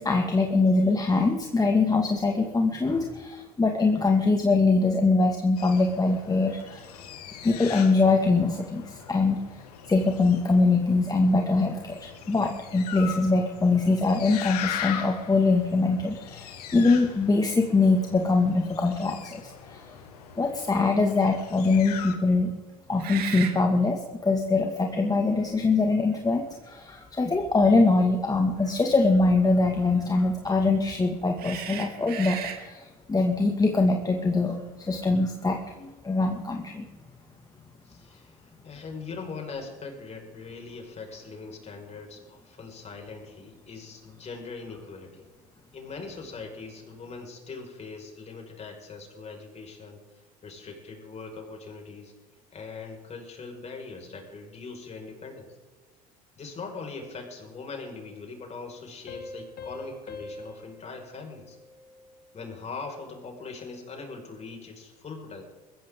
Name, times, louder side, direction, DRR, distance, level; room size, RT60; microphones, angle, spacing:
voice 1, 0.0-7.0 7.4-9.4 9.9-20.0 20.4-22.5 22.9-36.9, left 3 dB, 20° left, 2 dB, 2.1 m, -23 dB
sound 1, 5.6-22.2, left 9 dB, 85° left, 2.1 m, -40 dB
sound 2, 17.7-17.8 18.3-18.5 22.9-23.6 24.8-24.9 25.9-26.7 28.6-28.8 31.4-32.6, right 9 dB, 50° right, 3.3 m, -36 dB
voice 2, 37.8-45.3 45.7-50.0 50.4-52.1 52.5-55.5 56.4-61.6 62.3-65.4, left 4 dB, 35° left, 2 dB, 5.6 m, -41 dB
sound 3, 59.1-62.4, left 2 dB, 55° left, 2.8 m, -43 dB
22.5 x 15.5 x 3.8 m, 1.3 s
hypercardioid pair, 80°, 19 cm